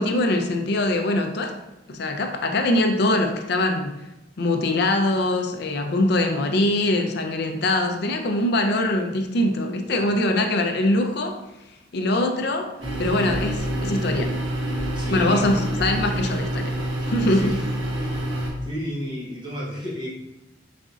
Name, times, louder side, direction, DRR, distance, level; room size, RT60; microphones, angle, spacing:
voice 1, 0.0-1.6 1.9-4.0 4.4-11.4 11.9-12.7 13.0-14.3 15.1-16.7 17.0-17.5, left 1 dB, 55° left, 5 dB, 0.5 m, -23 dB
sound 1, 12.8-18.5, right 1 dB, 80° right, 1.2 m, -27 dB
voice 2, 14.9-15.4 17.3-17.6 18.6-20.1, equal, 25° right, -6 dB, 1.1 m, -32 dB
4.1 x 3.6 x 2.4 m, 0.95 s
head